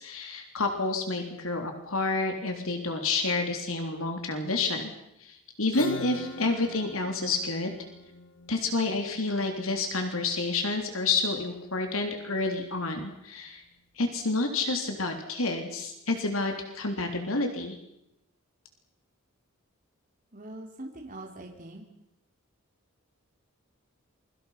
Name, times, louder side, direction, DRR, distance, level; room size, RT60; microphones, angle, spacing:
voice 1, 0.0-4.9 5.2-7.7 8.5-13.6 14.0-17.8, left 3 dB, 75° left, 4 dB, 3.6 m, -29 dB
Acoustic guitar / Strum, 5.7-11.1, left 2 dB, 55° left, 2.4 m, -41 dB
voice 2, 20.3-21.8, right 1 dB, 40° right, 1 dB, 3.5 m, -42 dB
28.0 x 23.5 x 6.0 m, 0.82 s
head